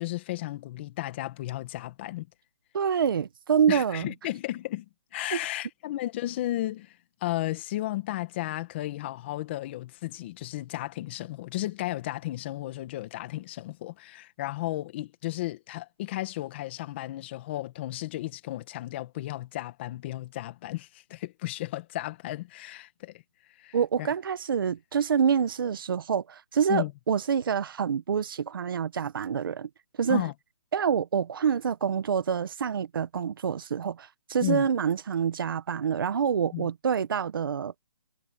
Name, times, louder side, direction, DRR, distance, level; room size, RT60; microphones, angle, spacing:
voice 1, 0.0-2.3 3.7-4.9 5.1-7.0 7.2-23.2 23.6-24.1 26.7-26.9 30.1-30.3 34.4-34.7 36.5-36.7, left 16 dB, 25° left, 1.8 m, -34 dB
voice 2, 2.7-4.1 5.3-5.4 23.7-29.7 30.0-30.3 30.7-37.8, right 7 dB, 50° right, 1.0 m, -27 dB
hypercardioid pair, 170°, 15 cm